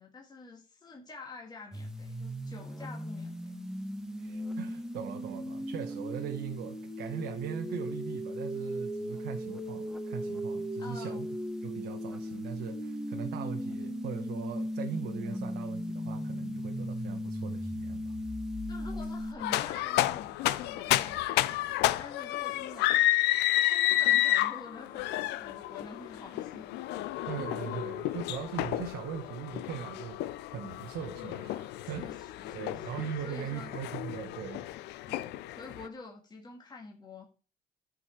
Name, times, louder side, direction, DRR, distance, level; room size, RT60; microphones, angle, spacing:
voice 1, 0.0-3.6 10.8-11.2 18.7-23.2 23.7-26.9 31.8-33.7 35.1-37.3, left 3 dB, 25° left, 2.0 m, -47 dB
sound 1, 1.7-19.3, equal, 5° right, 1.4 m, -37 dB
voice 2, 4.2-11.3 11.6-18.1 27.3-30.2 30.5-32.2 32.5-34.7, right 8 dB, 80° right, 1.1 m, -40 dB
sound 2, 19.4-35.9, left 15 dB, 85° left, 0.6 m, -31 dB
12.5 x 5.5 x 4.4 m
cardioid pair, 110°, 17 cm